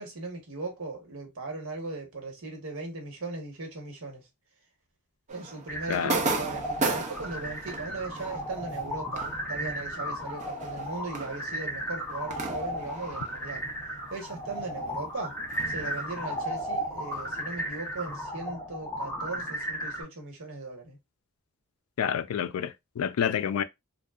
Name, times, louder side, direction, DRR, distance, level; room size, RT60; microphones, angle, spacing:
voice 1, 0.0-4.3 5.3-13.7 14.1-15.4 15.7-21.0, right 3 dB, 80° right, 1.1 m, -38 dB
sound 1, 5.3-14.3 14.5-18.1, right 3 dB, 35° right, 0.4 m, -37 dB
sound 2, 5.7-20.0, equal, 10° left, 0.6 m, -35 dB
voice 2, 22.0-23.6, left 8 dB, 90° left, 0.3 m, -28 dB
2.6 x 2.2 x 2.3 m
head